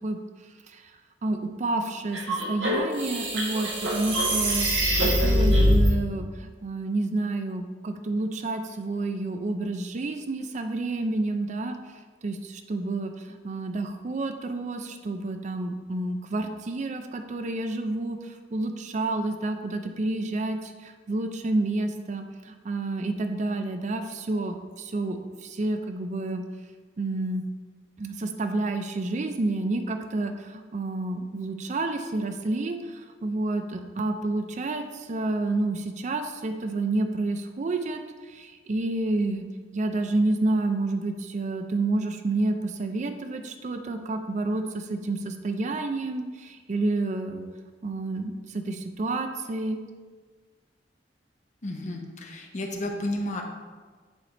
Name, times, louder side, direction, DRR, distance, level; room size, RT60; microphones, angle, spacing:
voice 1, 1.2-4.7 5.0-11.8 12.2-26.4 27.0-27.4 28.0-38.0 38.3-39.5 39.7-47.5 47.8-49.8, right 2 dB, 40° right, 7 dB, 0.4 m, -29 dB
sound 1, 2.1-5.9, equal, 90° right, 1.3 m, -23 dB
voice 2, 51.6-53.4, left 1 dB, 40° left, 1 dB, 0.7 m, -32 dB
9.2 x 3.3 x 4.1 m, 1.4 s
head